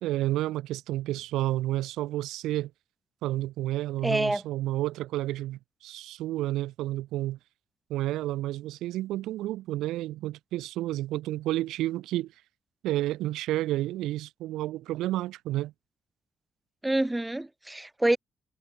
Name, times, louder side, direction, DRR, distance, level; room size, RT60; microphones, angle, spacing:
voice 1, 0.0-2.7 3.2-7.4 7.9-12.3 12.8-15.7, right 15 dB, 90° right, 0.9 m, -30 dB
voice 2, 4.0-4.4 16.8-18.2, right 1 dB, 10° right, 1.7 m, -26 dB
cardioid pair, 90°, 0 cm